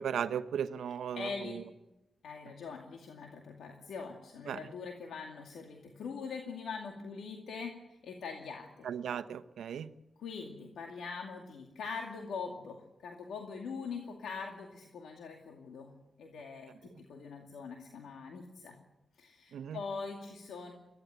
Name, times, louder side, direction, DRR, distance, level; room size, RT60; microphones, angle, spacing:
voice 1, 0.0-1.3 4.5-4.6 8.8-9.9 19.5-19.8, right 8 dB, 90° right, 11 dB, 1.0 m, -36 dB
voice 2, 1.1-1.6 2.2-8.9 10.2-18.8 19.2-20.7, left 5 dB, 90° left, 1 dB, 2.3 m, -43 dB
23.0 x 15.5 x 9.2 m, 0.96 s
cardioid pair, 65°, 0 cm